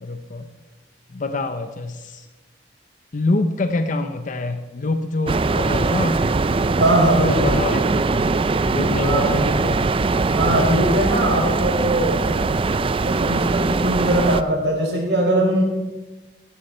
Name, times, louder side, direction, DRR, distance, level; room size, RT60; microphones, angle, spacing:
voice 1, 0.0-0.5 1.1-2.3 3.1-6.4 7.2-8.4 8.6-9.9, left 2 dB, 50° left, 8 dB, 0.7 m, -26 dB
sound 1, 5.3-14.4, right 3 dB, 30° right, 0.5 m, -21 dB
voice 2, 6.8-7.6 9.0-9.5 10.3-12.3 13.0-15.6, right 1 dB, 80° right, -2 dB, 5.3 m, -20 dB
14.5 x 13.0 x 4.4 m, 1.1 s
head